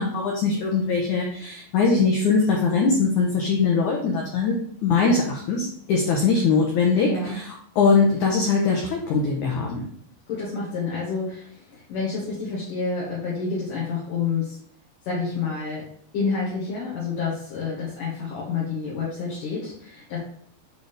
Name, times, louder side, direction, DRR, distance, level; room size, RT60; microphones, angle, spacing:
voice 1, 0.0-4.6 4.8-7.5 7.8-9.8, left 4 dB, 80° left, -1 dB, 1.7 m, -21 dB
voice 2, 7.0-7.4 10.3-14.6 15.0-15.9 16.1-20.2, left 4 dB, 60° left, -7 dB, 3.0 m, -29 dB
8.6 x 4.0 x 3.3 m, 0.64 s
omnidirectional pair, 4.6 m